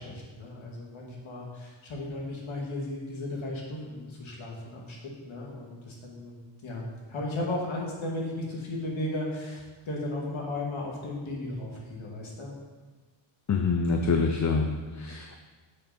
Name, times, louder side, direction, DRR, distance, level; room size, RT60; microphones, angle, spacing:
voice 1, 0.0-5.0 5.3-6.8 7.1-12.5, left 1 dB, 75° left, -2 dB, 2.4 m, -35 dB
voice 2, 13.5-14.7 15.0-15.4, left 4 dB, 35° left, 4 dB, 0.6 m, -25 dB
11.0 x 6.5 x 4.5 m, 1.3 s
wide cardioid pair, 150°, 48 cm